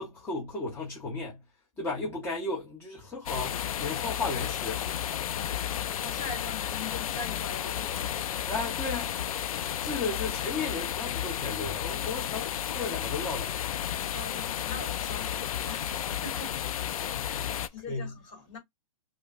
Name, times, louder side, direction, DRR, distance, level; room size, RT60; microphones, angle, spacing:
voice 1, 0.0-1.4 1.8-4.9 8.5-9.2 9.8-13.5 17.3-18.1, left 3 dB, 15° left, 0.9 m, -35 dB
sound 1, 3.3-17.7, left 10 dB, 65° left, 0.4 m, -32 dB
voice 2, 5.2-8.4 13.9-16.6 17.2-18.6, left 4 dB, 30° left, 2.5 m, -43 dB
4.9 x 2.1 x 2.5 m
hypercardioid pair, 140°, 19 cm